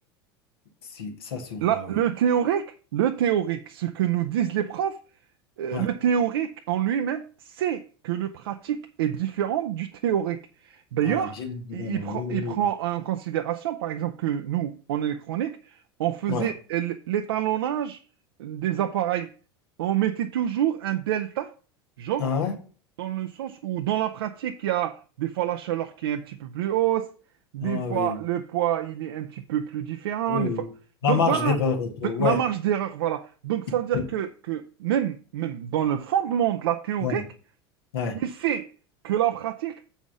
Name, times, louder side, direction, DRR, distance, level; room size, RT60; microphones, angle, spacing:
voice 1, 1.0-1.6 5.7-5.9 11.1-12.6 16.3-16.5 22.2-22.5 27.6-28.2 30.3-30.7 31.0-32.4 33.9-34.0 37.0-37.2 37.9-38.2, left 6 dB, 65° left, 1.8 m, -27 dB
voice 2, 1.6-5.0 5.6-11.4 11.7-18.0 18.4-19.3 19.8-21.5 22.0-22.3 23.0-27.1 27.5-30.7 31.0-31.6 32.0-37.3 38.1-38.7 39.0-39.8, right 10 dB, 65° right, 0.5 m, -27 dB
7.0 x 5.6 x 6.0 m
figure-of-eight pair, 75°, 13 cm